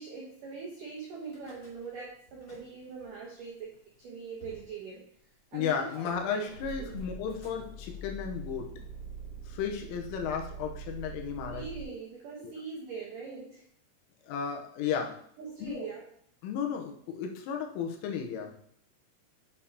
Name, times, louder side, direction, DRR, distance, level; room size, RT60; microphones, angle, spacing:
voice 1, 0.0-5.1 5.5-6.5 6.8-6.9 11.4-13.7 15.4-16.1, right 5 dB, 80° right, -3 dB, 1.9 m, -42 dB
Car / Engine starting / Idling, 1.2-2.0 2.3-3.1 3.7-3.8 4.0-4.1 4.4-4.7 5.6-11.8, right 3 dB, 35° left, 2.8 m, -44 dB
voice 2, 5.5-8.7 9.5-11.6 12.4-12.5 14.2-15.2 15.6-15.8 16.4-18.6, left 7 dB, 90° left, 2 dB, 3.4 m, -34 dB
8.9 x 6.9 x 2.9 m, 0.64 s
omnidirectional pair, 5.8 m